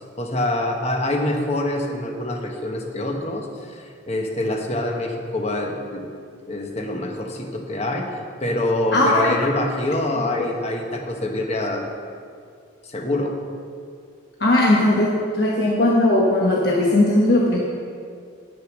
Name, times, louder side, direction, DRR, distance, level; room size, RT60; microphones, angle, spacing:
voice 1, 0.2-6.0 6.5-11.9 12.8-13.3, left 1 dB, 35° left, 2 dB, 1.1 m, -25 dB
voice 2, 8.9-9.5 10.4-10.6 14.4-17.6, left 1 dB, 55° left, -3 dB, 1.1 m, -18 dB
10.0 x 6.5 x 6.2 m, 2.3 s
head